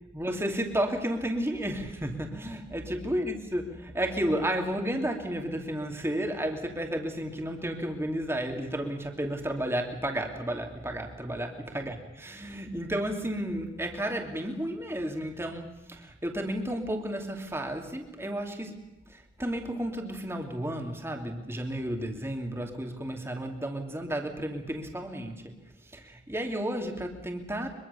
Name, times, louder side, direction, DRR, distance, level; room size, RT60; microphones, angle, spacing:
voice 1, 0.1-25.6 25.9-27.7, right 1 dB, 15° right, 3 dB, 2.7 m, -32 dB
23.5 x 23.5 x 6.9 m, 1.0 s
head